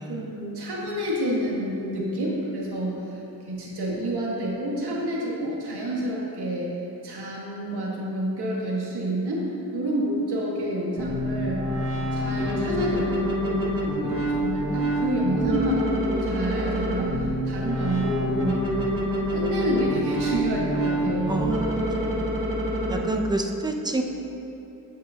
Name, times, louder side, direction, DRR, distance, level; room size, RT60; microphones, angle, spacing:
voice 1, 0.0-3.0 3.4-6.8 7.0-11.7 12.1-13.7 14.0-18.7 19.3-21.4, right 1 dB, 75° right, -4 dB, 1.7 m, -28 dB
sound 1, 11.0-23.0, equal, 35° right, 1.5 m, -27 dB
voice 2, 21.3-21.6 22.0-22.5 22.9-24.0, right 2 dB, 10° right, 4 dB, 0.6 m, -29 dB
9.2 x 8.1 x 2.8 m, 3.0 s
wide cardioid pair, 95°, 40 cm